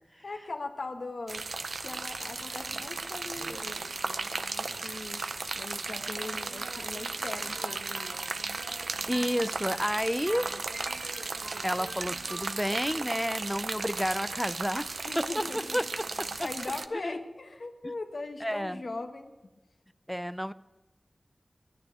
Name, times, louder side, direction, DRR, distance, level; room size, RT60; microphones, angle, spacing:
voice 1, 0.2-1.5 1.8-5.2 5.5-8.1 15.0-15.8 16.4-19.3, left 3 dB, 80° left, 6 dB, 1.3 m, -40 dB
sound 1, 1.3-16.9, right 3 dB, 85° right, 0.5 m, -36 dB
sound 2, 2.6-6.0, left 1 dB, 55° left, 2.0 m, -61 dB
sound 3, 7.1-12.9, right 1 dB, 45° right, 1.7 m, -47 dB
voice 2, 9.1-10.5 11.6-14.9 15.2-15.4 15.7-16.5 17.0-17.1 18.4-18.8 20.1-20.5, equal, ahead, 15 dB, 0.4 m, -30 dB
10.5 x 9.8 x 8.6 m, 1.1 s
cardioid pair, 40°, 0 cm